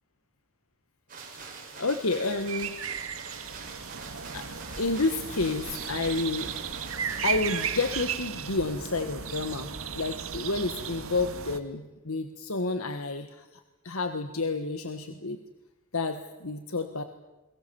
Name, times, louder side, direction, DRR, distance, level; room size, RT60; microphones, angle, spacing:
sound 1, 1.1-8.0, right 5 dB, 40° right, 5.7 m, -44 dB
voice 1, 1.3-2.7 4.3-4.5 4.7-6.5 7.2-15.4 15.9-17.0, left 3 dB, 85° left, 8 dB, 1.5 m, -30 dB
sound 2, 2.1-11.6, right 7 dB, 85° right, 1.8 m, -35 dB
29.0 x 22.5 x 7.1 m, 1.0 s
head